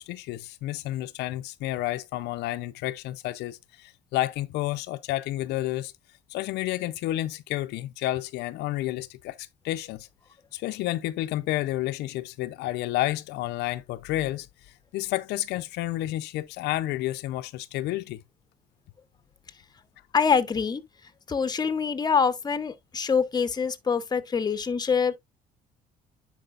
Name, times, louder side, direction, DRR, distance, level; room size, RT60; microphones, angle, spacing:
voice 1, 0.0-5.9 6.3-10.1 10.5-14.5 14.9-18.2, left 15 dB, 85° left, 0.5 m, -30 dB
voice 2, 20.1-20.8 21.3-25.2, left 6 dB, 25° left, 0.8 m, -25 dB
10.0 x 4.8 x 2.4 m
cardioid pair, 110°, 17 cm